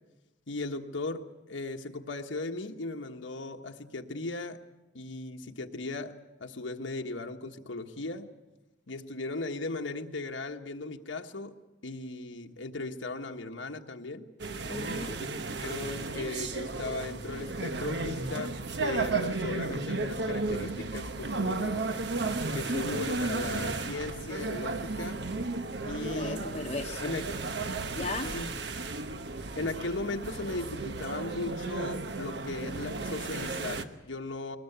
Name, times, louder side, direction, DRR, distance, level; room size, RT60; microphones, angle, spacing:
voice 1, 0.5-4.6 4.9-8.3 8.9-11.6 11.8-14.2 15.2-21.9 22.5-25.2 25.8-26.5 27.0-27.2 28.3-28.5 29.6-34.6, left 2 dB, 90° left, 4 dB, 1.3 m, -37 dB
sound 1, 14.4-33.8, right 3 dB, 65° right, 1.1 m, -34 dB
voice 2, 14.7-15.2 26.0-27.1 27.9-28.3, left 3 dB, 35° left, 4 dB, 1.0 m, -36 dB
22.0 x 19.5 x 8.0 m, 1.0 s
head